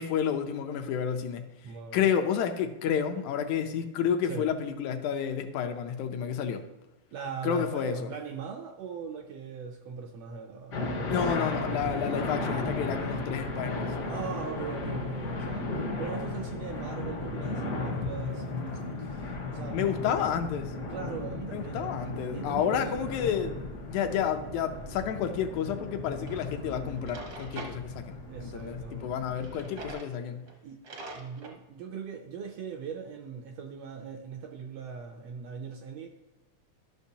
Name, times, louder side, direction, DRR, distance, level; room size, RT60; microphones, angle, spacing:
voice 1, 0.0-1.5 1.9-6.7 7.4-8.0 11.1-13.9 19.7-20.7 21.5-23.5 23.9-30.4, left 8 dB, 80° left, 6 dB, 2.0 m, -30 dB
voice 2, 1.6-2.0 4.2-4.5 7.1-10.8 14.0-19.8 20.9-22.0 22.3-23.1 28.3-29.1 30.6-30.8 31.1-36.1, right 6 dB, 80° right, 3 dB, 1.5 m, -40 dB
sound 1, 10.7-29.9, left 2 dB, 60° left, 0.9 m, -35 dB
Drawer open or close, 26.3-26.4 26.9-27.8 29.3-30.1 30.5-30.6 30.8-31.6, right 2 dB, 60° right, 1.0 m, -43 dB
13.0 x 6.0 x 2.8 m, 1.1 s
omnidirectional pair, 3.3 m